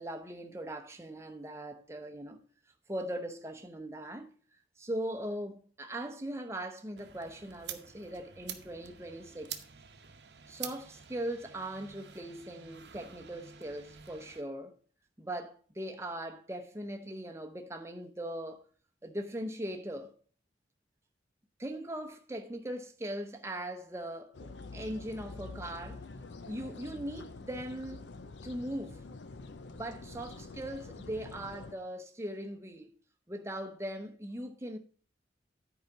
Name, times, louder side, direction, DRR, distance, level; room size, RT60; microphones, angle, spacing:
voice 1, 0.0-2.4 2.9-4.3 4.8-9.5 10.5-14.7 15.2-18.7 19.0-20.2 21.6-26.0 26.4-28.0 28.4-29.0 29.7-32.9 33.3-34.8, right 1 dB, 15° right, 0.8 m, -40 dB
sound 1, 7.0-14.4, right 9 dB, 70° right, 0.9 m, -48 dB
sound 2, 24.3-31.7, left 3 dB, 80° left, 0.7 m, -47 dB
9.4 x 4.9 x 5.9 m
head